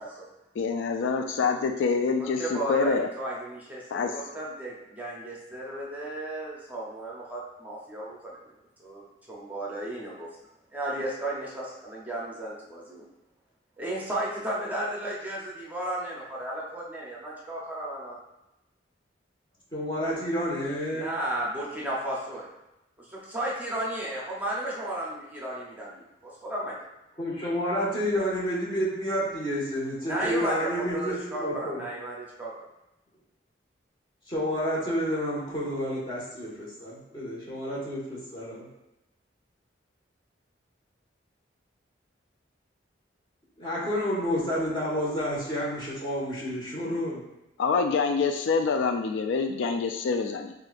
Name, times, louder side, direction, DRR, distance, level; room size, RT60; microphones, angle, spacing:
voice 1, 0.6-3.1 3.9-4.1 47.6-50.5, left 5 dB, 85° left, 6 dB, 0.3 m, -26 dB
voice 2, 2.2-8.4 8.8-10.3 10.7-13.1 13.8-18.2 20.9-22.5 23.0-26.8 30.0-32.5, right 1 dB, 10° right, -5 dB, 0.8 m, -34 dB
voice 3, 19.7-21.1 27.2-31.8 34.3-38.7 43.6-47.2, equal, 25° left, -7 dB, 1.5 m, -30 dB
7.4 x 2.5 x 2.5 m, 0.92 s
head